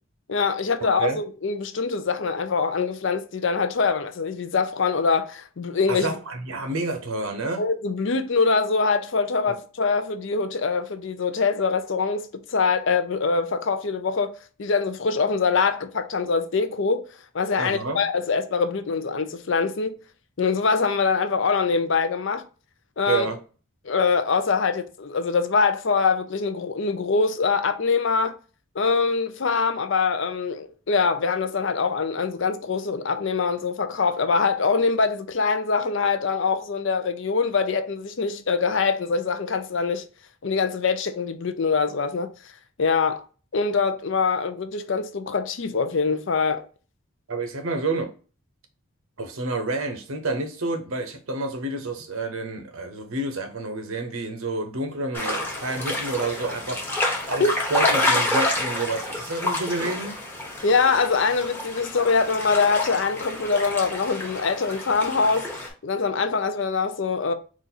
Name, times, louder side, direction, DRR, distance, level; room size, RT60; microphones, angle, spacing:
voice 1, 0.3-6.1 7.6-17.1 17.3-20.0 20.4-22.4 23.0-23.3 23.8-28.4 28.8-40.0 40.4-42.3 42.8-43.2 43.5-46.6 57.4-57.5 60.6-67.3, left 4 dB, 60° left, 0.5 m, -24 dB
voice 2, 0.8-1.2 5.9-7.6 17.6-18.0 23.1-23.4 47.3-48.1 49.2-56.8 57.3-57.4 57.7-60.2, right 3 dB, 80° right, 0.8 m, -29 dB
sound 1, 55.1-65.7, left 1 dB, 10° left, 0.9 m, -28 dB
4.1 x 2.5 x 3.9 m
head